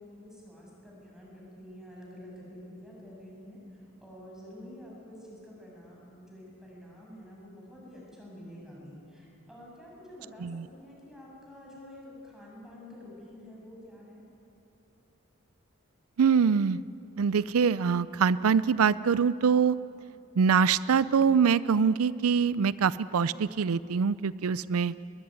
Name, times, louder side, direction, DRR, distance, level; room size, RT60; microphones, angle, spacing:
voice 1, 0.0-14.2, left 1 dB, ahead, -4 dB, 7.2 m, -48 dB
voice 2, 16.2-16.8 17.2-19.8 20.4-24.9, right 6 dB, 85° right, 17 dB, 0.5 m, -24 dB
22.0 x 21.5 x 9.6 m, 2.8 s
head